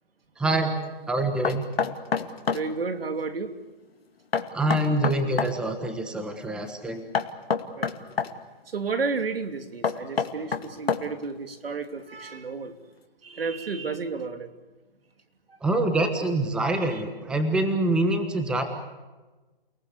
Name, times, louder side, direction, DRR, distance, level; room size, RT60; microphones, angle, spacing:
voice 1, 0.4-0.8 1.1-1.7 4.5-7.1 15.6-18.6, right 2 dB, 5° right, 7 dB, 1.3 m, -25 dB
Knock, 1.4-2.7 4.3-5.6 7.1-8.3 9.8-11.3, left 6 dB, 90° left, 2.4 m, -27 dB
voice 2, 2.5-3.5 7.8-7.9 8.7-12.8 13.2-14.5, right 4 dB, 75° right, 8 dB, 3.0 m, -31 dB
29.5 x 19.0 x 8.2 m, 1.2 s
hypercardioid pair, 160°, 29 cm